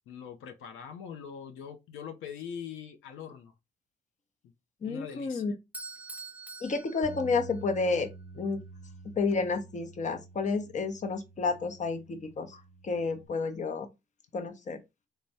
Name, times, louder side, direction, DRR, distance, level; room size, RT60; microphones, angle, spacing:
voice 1, 0.1-3.5 4.8-5.4, left 7 dB, 85° left, 0.7 m, -42 dB
voice 2, 4.8-5.5 6.6-8.1 8.3-8.6 9.1-13.9 14.3-14.8, left 4 dB, 35° left, 0.8 m, -31 dB
Bell / Doorbell, 5.7-7.8, right 3 dB, 10° right, 0.4 m, -45 dB
sound 1, 7.0-13.3, right 3 dB, 50° right, 0.8 m, -49 dB
3.4 x 2.2 x 4.0 m
cardioid pair, 90°, 20 cm